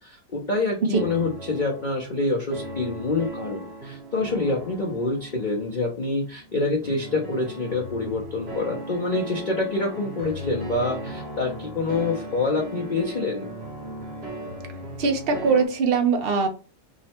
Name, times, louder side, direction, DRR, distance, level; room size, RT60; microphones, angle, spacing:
voice 1, 0.0-13.5, left 3 dB, 80° left, 0 dB, 0.4 m, -26 dB
sound 1, 0.9-15.7, right 1 dB, 45° right, 1.0 m, -37 dB
voice 2, 15.0-16.5, right 5 dB, 65° right, 5 dB, 0.5 m, -21 dB
3.6 x 2.1 x 4.2 m, 0.34 s
omnidirectional pair, 1.8 m